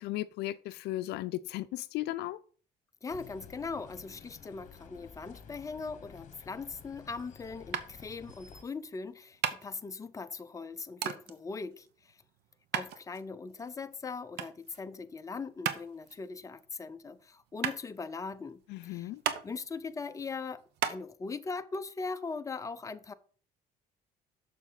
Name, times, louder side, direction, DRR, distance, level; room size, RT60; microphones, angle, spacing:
voice 1, 0.0-2.4 18.7-19.2, left 16 dB, 80° left, 0.5 m, -36 dB
voice 2, 3.0-12.2 12.7-19.1 19.4-23.1, left 4 dB, 20° left, 0.6 m, -40 dB
sound 1, 3.1-8.6, left 6 dB, 45° left, 1.3 m, -52 dB
sound 2, 7.7-21.0, right 10 dB, 80° right, 0.9 m, -38 dB
7.1 x 6.7 x 4.0 m
cardioid pair, 110°, 17 cm